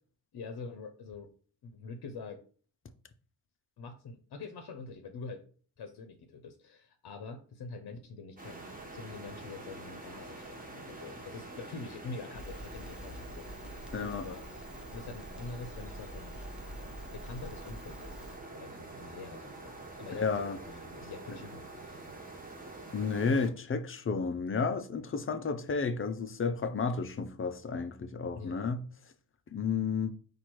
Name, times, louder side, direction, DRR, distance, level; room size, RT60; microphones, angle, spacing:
voice 1, 0.3-1.3 1.6-2.4 3.8-5.4 5.8-8.6 8.9-14.7 14.9-16.3 17.1-18.2 18.5-22.0 28.3-28.8, left 4 dB, 65° left, 0.8 m, -45 dB
sound 1, 8.4-23.5, right 2 dB, 20° right, 1.3 m, -46 dB
Crackle, 12.3-18.4, equal, ahead, 0.7 m, -46 dB
voice 2, 13.9-14.3 20.1-20.6 21.3-21.4 22.9-28.8 29.5-30.1, left 5 dB, 30° left, 0.6 m, -32 dB
4.3 x 2.6 x 4.6 m
cardioid pair, 80°, 41 cm